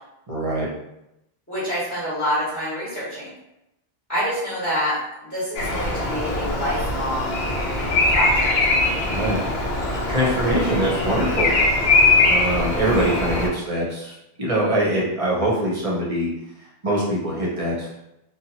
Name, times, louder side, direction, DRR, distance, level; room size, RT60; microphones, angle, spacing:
voice 1, 0.3-0.7 9.0-9.4 10.1-11.5 12.3-14.1 14.4-16.3 16.8-17.9, right 1 dB, 40° right, -5 dB, 0.7 m, -23 dB
voice 2, 1.5-3.3 4.1-7.3 8.1-8.5, equal, 15° left, -11 dB, 1.2 m, -27 dB
Bird vocalization bird call bird song, 5.6-13.5, left 2 dB, 75° left, 0.8 m, -21 dB
2.7 x 2.3 x 2.7 m, 0.87 s
omnidirectional pair, 1.1 m